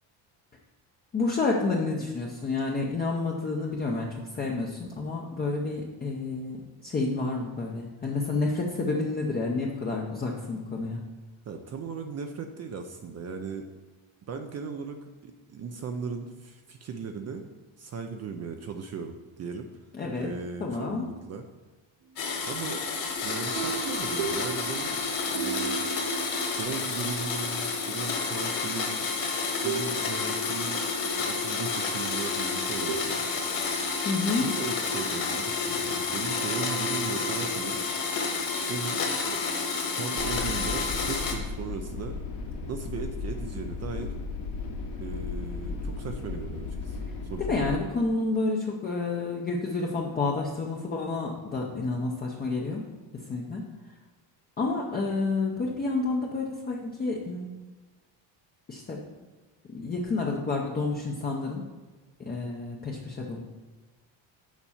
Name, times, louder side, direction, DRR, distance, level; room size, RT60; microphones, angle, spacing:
voice 1, 1.1-11.0 19.9-20.3 20.6-21.1 34.0-34.5 47.5-52.9 53.3-53.7 54.6-57.5 58.7-59.0 59.7-61.6 62.2-63.4, left 3 dB, 20° left, -1 dB, 0.6 m, -29 dB
voice 2, 11.5-13.7 14.3-17.5 17.8-19.7 20.2-21.5 22.5-22.8 23.2-25.0 25.3-25.9 26.6-29.1 29.6-33.2 34.4-37.8 38.7-39.5 39.9-42.2 42.7-44.1 45.0-47.6, right 5 dB, 35° right, 5 dB, 0.5 m, -37 dB
Domestic sounds home sounds, 22.2-41.3, left 4 dB, 45° left, 1.6 m, -30 dB
sound 1, 23.6-27.1 28.5-28.7 29.6-30.0 30.3-31.1 32.9-33.0, right 7 dB, 50° right, 0.8 m, -36 dB
sound 2, 40.2-47.8, left 4 dB, 75° left, 2.2 m, -35 dB
7.3 x 5.3 x 7.1 m, 1.3 s
cardioid pair, 175°, 48 cm